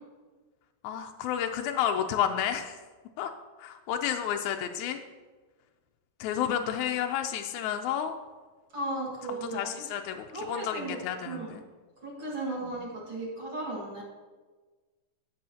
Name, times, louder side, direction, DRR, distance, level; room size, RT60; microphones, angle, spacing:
voice 1, 0.8-2.8 3.2-3.3 3.6-5.0 6.2-8.1 9.5-11.6 12.6-12.7, left 9 dB, 80° left, 5 dB, 1.7 m, -31 dB
voice 2, 8.7-9.7 10.3-11.0 11.2-11.6 12.0-14.0, right 2 dB, 45° right, -5 dB, 2.1 m, -35 dB
15.5 x 6.2 x 2.8 m, 1.3 s
omnidirectional pair, 3.8 m